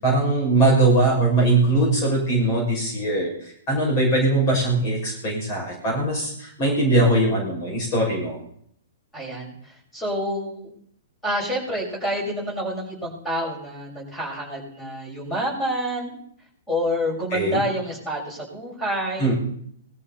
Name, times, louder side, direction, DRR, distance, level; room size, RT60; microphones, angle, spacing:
voice 1, 0.0-8.4 17.3-17.6 19.2-19.3, right 2 dB, 35° left, -2 dB, 6.1 m, -21 dB
voice 2, 9.1-10.7 11.2-16.2 16.7-19.3, equal, 10° left, -1 dB, 6.4 m, -28 dB
19.0 x 14.0 x 4.2 m, 0.67 s
figure-of-eight pair, 110°, 0 cm